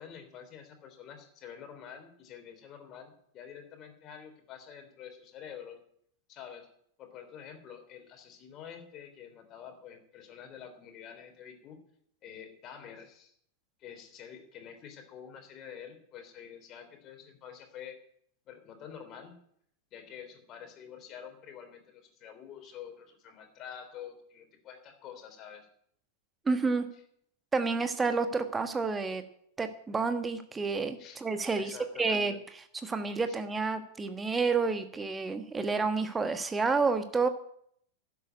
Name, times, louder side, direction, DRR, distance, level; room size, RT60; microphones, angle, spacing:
voice 1, 0.0-5.8 6.3-6.7 7.0-11.8 12.2-13.3 13.8-18.0 18.5-19.4 19.9-25.7 31.0-31.2 31.5-32.4 33.3-33.4, left 8 dB, 35° left, 6 dB, 3.7 m, -48 dB
voice 2, 26.4-26.9 27.5-29.2 29.6-32.3 32.8-37.3, right 4 dB, 15° right, 8 dB, 1.4 m, -29 dB
12.0 x 8.3 x 9.5 m, 0.67 s
figure-of-eight pair, 95°, 0 cm